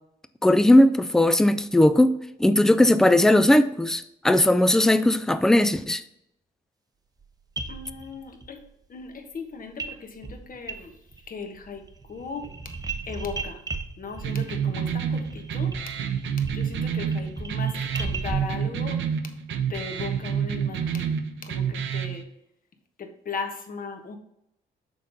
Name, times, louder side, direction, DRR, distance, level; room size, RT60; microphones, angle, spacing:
voice 1, 0.4-2.1 2.4-6.0, left 1 dB, 5° left, 12 dB, 0.4 m, -18 dB
sound 1, 7.2-7.3 7.6-8.5 9.8-10.0 10.2-11.3 11.6-18.6, right 3 dB, 20° right, 0.7 m, -36 dB
voice 2, 7.7-8.6 8.9-10.9 11.3-11.8 12.1-12.5 13.1-13.6 14.0-15.7 16.5-19.0 19.7-22.2 23.0-24.2, left 5 dB, 45° left, 5 dB, 1.2 m, -37 dB
sound 2, 14.2-22.2, right 7 dB, 75° right, 0.8 m, -28 dB
6.6 x 3.8 x 5.2 m, 0.77 s
cardioid pair, 90°, 20 cm